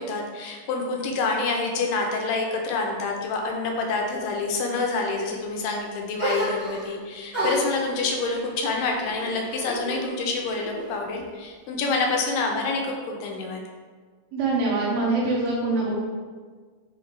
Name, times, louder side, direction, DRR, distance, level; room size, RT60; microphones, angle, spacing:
voice 1, 0.0-13.6, left 3 dB, 85° left, 1 dB, 2.2 m, -27 dB
sound 1, 6.2-7.0 7.3-10.0 10.4-11.2, right 1 dB, 65° right, 0.9 m, -31 dB
voice 2, 14.3-15.9, right 3 dB, 85° right, -6 dB, 2.3 m, -24 dB
6.3 x 2.1 x 3.2 m, 1.5 s
omnidirectional pair, 3.9 m